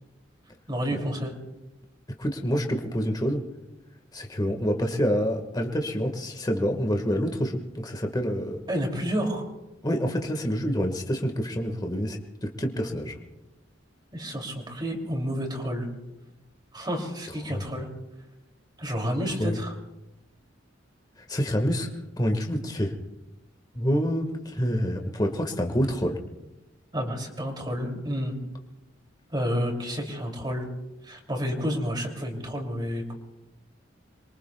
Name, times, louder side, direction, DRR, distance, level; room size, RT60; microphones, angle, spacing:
voice 1, 0.7-1.3 8.7-9.5 14.1-15.9 16.7-17.9 18.8-19.7 26.9-28.3 29.3-30.7 31.0-33.1, equal, 25° right, 2 dB, 2.8 m, -30 dB
voice 2, 2.2-3.4 4.1-8.6 9.8-12.2 12.4-13.1 17.5-17.6 19.4-19.6 21.3-21.9 22.2-22.9 23.7-26.2, equal, 20° left, 3 dB, 1.6 m, -27 dB
27.0 x 23.0 x 2.3 m, 0.99 s
head